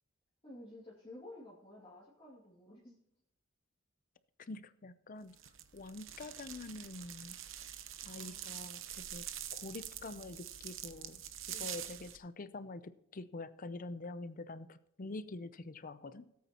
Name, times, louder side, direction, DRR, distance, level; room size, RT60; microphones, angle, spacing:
voice 1, 0.4-3.0 8.0-8.7 11.5-11.9, left 1 dB, 25° left, -6 dB, 2.3 m, -53 dB
voice 2, 4.5-5.4 5.7-7.4 8.1-9.2 9.5-11.2 11.6-12.8 13.1-16.3, left 2 dB, 45° left, 13 dB, 0.6 m, -46 dB
sound 1, 5.4-12.2, right 11 dB, 75° right, 0.9 m, -45 dB
17.0 x 8.6 x 3.0 m, 0.81 s
head